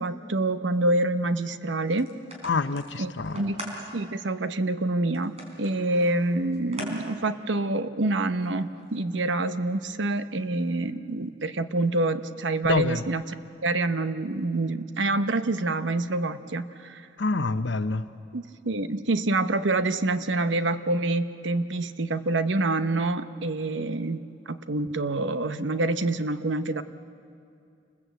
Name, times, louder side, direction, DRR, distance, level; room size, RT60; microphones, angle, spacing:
voice 1, 0.0-2.1 3.0-13.4 13.6-17.1 18.3-26.8, right 2 dB, 90° right, 11 dB, 0.9 m, -27 dB
sound 1, 1.9-3.8 4.3-4.4 5.1-6.9 7.3-7.4 8.4-9.5, right 1 dB, 35° right, 4.5 m, -42 dB
voice 2, 2.4-3.4 12.6-13.0 17.2-18.0, left 3 dB, 75° left, 12 dB, 0.9 m, -26 dB
29.0 x 20.0 x 8.1 m, 2.5 s
head